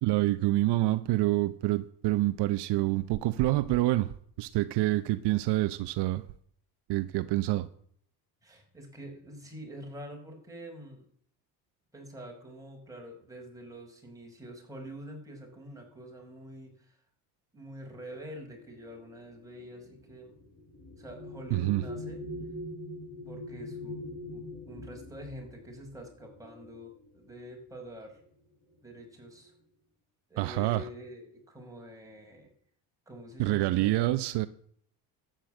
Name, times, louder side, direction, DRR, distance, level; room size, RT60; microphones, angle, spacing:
voice 1, 0.0-6.2 6.9-7.7 21.5-21.8 30.4-30.9 33.4-34.5, right 17 dB, 70° right, 0.9 m, -27 dB
voice 2, 8.4-11.1 11.9-17.0 17.5-20.3 21.0-22.2 23.3-24.0 24.3-28.2 28.8-29.5 30.3-32.5 33.1-34.1, equal, 10° right, 5.4 m, -46 dB
sound 1, 18.4-27.3 28.2-28.4 28.7-29.3, left 1 dB, 20° left, 7.2 m, -43 dB
13.0 x 9.1 x 7.7 m
cardioid pair, 115°, 42 cm